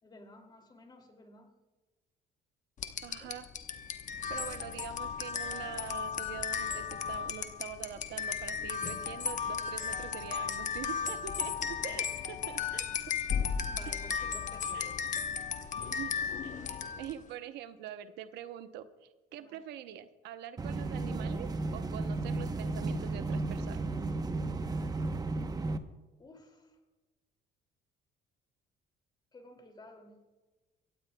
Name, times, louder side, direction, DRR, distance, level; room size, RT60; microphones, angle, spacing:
voice 1, 0.0-1.5 3.2-3.3 13.7-15.3 19.4-19.6 26.2-26.8 29.3-30.2, left 2 dB, 25° left, 4 dB, 2.6 m, -54 dB
sound 1, 2.8-17.2, left 7 dB, 45° left, 1.0 m, -35 dB
voice 2, 3.0-3.5 4.3-12.9 13.9-14.0 14.7-14.9 15.9-18.9 19.3-23.8, right 10 dB, 85° right, 10 dB, 0.8 m, -44 dB
sound 2, 20.6-25.8, right 3 dB, 20° right, 0.9 m, -34 dB
24.5 x 16.5 x 2.2 m, 1.2 s
cardioid pair, 110°, 17 cm